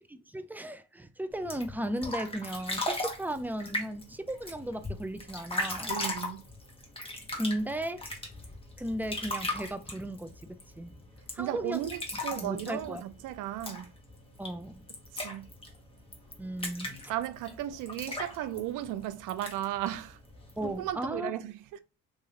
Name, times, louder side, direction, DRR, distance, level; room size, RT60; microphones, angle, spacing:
voice 1, 0.1-5.9 7.3-8.0 8.8-11.0 11.3-11.8 12.4-13.0 14.4-14.8 16.4-16.9 20.6-21.3, right 1 dB, 5° right, 0.4 m, -35 dB
sound 1, 1.3-20.9, left 1 dB, 20° left, 1.2 m, -39 dB
voice 2, 5.9-6.4 11.4-13.9 15.1-15.5 17.1-20.2 20.6-21.8, right 12 dB, 90° right, 0.5 m, -35 dB
3.1 x 2.6 x 3.7 m
cardioid pair, 90°, 30 cm